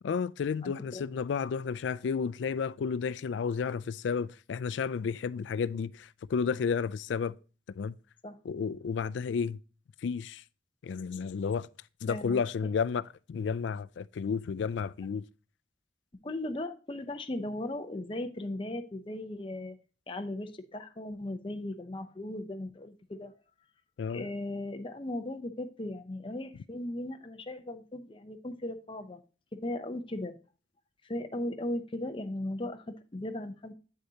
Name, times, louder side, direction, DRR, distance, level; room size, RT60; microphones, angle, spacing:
voice 1, 0.0-7.4 7.7-8.0 8.4-9.6 10.0-10.4 10.8-11.7 12.0-15.2 24.0-24.3, left 6 dB, 85° left, 0.3 m, -32 dB
voice 2, 0.6-1.0 8.2-8.4 12.1-12.4 16.2-19.8 20.1-23.3 24.1-29.2 29.5-30.4 31.0-33.7, left 1 dB, 30° left, 0.6 m, -37 dB
8.3 x 6.4 x 2.8 m
head